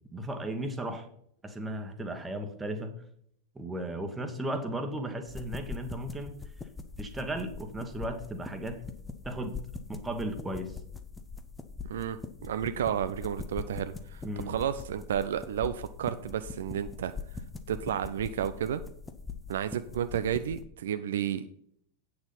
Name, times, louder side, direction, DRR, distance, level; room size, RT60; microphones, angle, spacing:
voice 1, 0.1-1.1 1.4-2.9 3.5-6.3 7.0-8.8 9.2-9.6 9.9-10.8 14.2-14.5, right 1 dB, 10° right, 6 dB, 1.4 m, -35 dB
sound 1, 5.3-20.6, left 4 dB, 10° left, 0.8 m, -42 dB
voice 2, 11.9-17.1 17.7-18.8 19.5-21.5, right 9 dB, 60° right, 11 dB, 0.4 m, -32 dB
8.7 x 6.6 x 5.6 m, 0.67 s
figure-of-eight pair, 90°, 0 cm